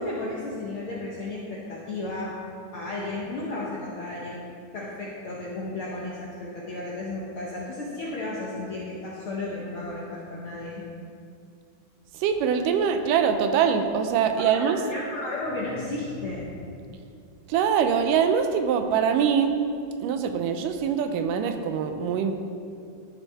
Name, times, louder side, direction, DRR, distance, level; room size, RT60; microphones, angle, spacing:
voice 1, 0.0-2.4 2.7-4.4 4.7-10.8 14.4-16.7, left 2 dB, 70° left, -5 dB, 1.2 m, -33 dB
voice 2, 12.1-14.8 17.5-19.5 20.0-22.3, right 7 dB, 85° right, 7 dB, 2.1 m, -23 dB
12.5 x 7.0 x 3.4 m, 2.5 s
omnidirectional pair, 3.8 m